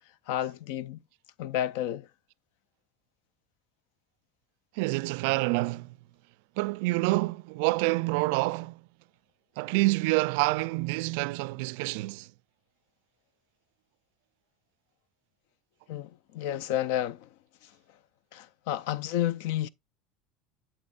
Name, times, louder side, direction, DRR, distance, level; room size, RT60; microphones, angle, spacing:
voice 1, 0.3-1.0 1.4-2.1 15.9-17.3 18.3-19.7, left 12 dB, 75° left, 0.5 m, -31 dB
voice 2, 4.8-5.9 6.6-8.8 9.6-12.3, right 23 dB, 75° right, 0.3 m, -27 dB
8.5 x 7.1 x 2.4 m
supercardioid pair, 140°, 0 cm